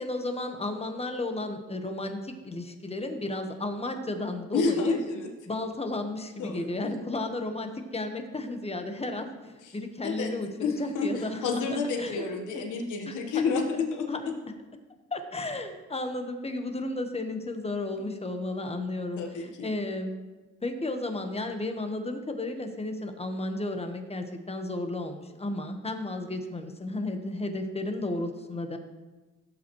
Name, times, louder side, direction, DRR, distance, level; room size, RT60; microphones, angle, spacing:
voice 1, 0.0-5.0 5.5-12.3 13.1-13.6 14.1-14.3 15.1-20.1 20.6-28.8, left 2 dB, 20° left, 6 dB, 1.3 m, -33 dB
voice 2, 4.5-5.3 6.4-6.9 9.6-9.7 10.0-10.3 10.6-14.1 19.2-19.7, left 4 dB, 80° left, 3 dB, 1.4 m, -30 dB
16.5 x 7.1 x 3.2 m, 1.2 s
cardioid pair, 90°, 30 cm